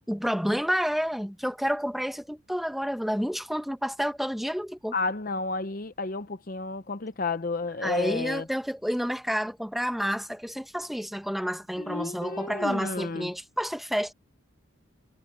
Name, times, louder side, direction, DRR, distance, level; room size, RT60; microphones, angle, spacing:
voice 1, 0.1-4.9 7.8-14.1, equal, ahead, 1.1 m, -29 dB
voice 2, 4.9-8.4 11.8-13.3, left 3 dB, 40° left, 0.6 m, -31 dB
head